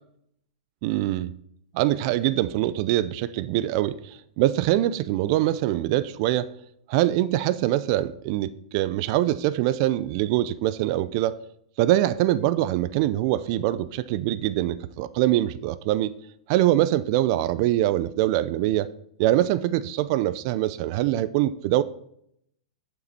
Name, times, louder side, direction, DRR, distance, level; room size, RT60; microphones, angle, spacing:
voice 1, 0.8-1.4 1.7-6.5 6.9-11.4 11.8-16.1 16.5-18.9 19.2-21.8, right 14 dB, 50° right, 0.5 m, -23 dB
8.9 x 7.5 x 4.1 m
hypercardioid pair, 115°, 4 cm